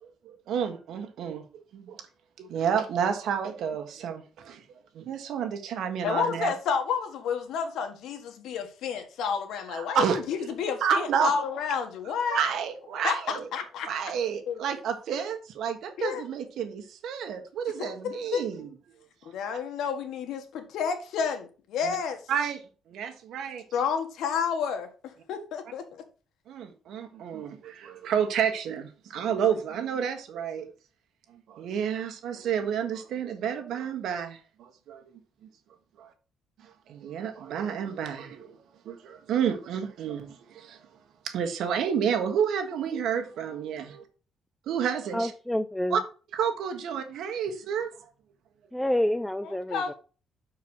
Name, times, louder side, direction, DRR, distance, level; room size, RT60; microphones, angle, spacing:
voice 1, 0.0-2.0 2.4-4.6 4.9-6.5 9.7-10.2 10.8-11.3 12.3-13.5 13.8-18.7 21.8-22.0 22.3-22.6 22.9-23.6 26.5-30.7 31.3-35.0 36.0-36.1 36.6-38.5 38.8-40.8 41.2-43.8 44.7-45.3 45.9-46.0 46.3-47.9, right 8 dB, 70° right, 1.5 m, -30 dB
voice 2, 6.0-12.4 13.0-13.9 14.5-14.6 16.0-16.2 17.8-18.5 19.2-22.2 23.7-26.0 49.7-49.9, left 6 dB, 75° left, 1.5 m, -30 dB
voice 3, 45.1-46.0 48.7-49.8, left 1 dB, 5° left, 0.3 m, -28 dB
6.1 x 4.7 x 6.2 m
cardioid pair, 140°, 0 cm